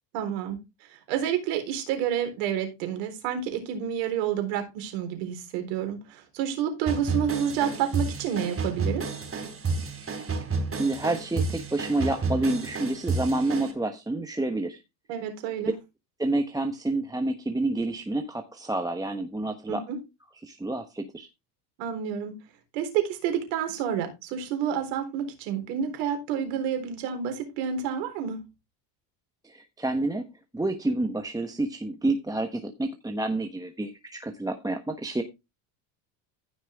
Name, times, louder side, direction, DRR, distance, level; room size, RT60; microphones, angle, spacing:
voice 1, 0.1-0.6 0.9-9.0 15.1-15.7 19.7-20.0 21.8-22.4 22.7-28.4, right 9 dB, 70° right, 4.0 m, -29 dB
sound 1, 6.9-13.7, right 4 dB, 25° right, 3.8 m, -31 dB
voice 2, 10.8-14.8 16.2-19.8 20.4-21.3 29.4-30.3 30.5-35.2, right 2 dB, 5° right, 1.1 m, -29 dB
15.0 x 5.5 x 3.5 m
hypercardioid pair, 85°, 50 cm